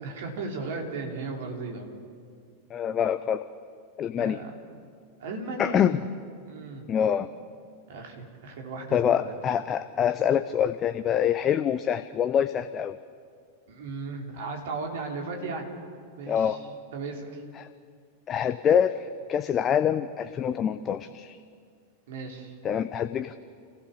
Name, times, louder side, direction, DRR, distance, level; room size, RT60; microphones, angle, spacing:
voice 1, 0.0-1.9 4.1-4.5 5.2-5.8 6.5-6.8 7.9-9.3 13.7-15.7 16.2-16.6 16.9-17.4 22.1-22.5, right 3 dB, 55° right, 1 dB, 3.7 m, -36 dB
voice 2, 2.7-3.4 4.0-4.4 5.6-6.0 6.9-7.3 8.9-13.0 16.3-16.6 17.6-17.7 18.3-21.4 22.6-23.4, left 8 dB, 25° left, 10 dB, 0.7 m, -25 dB
29.0 x 16.0 x 7.0 m, 2.2 s
figure-of-eight pair, 90°, 0 cm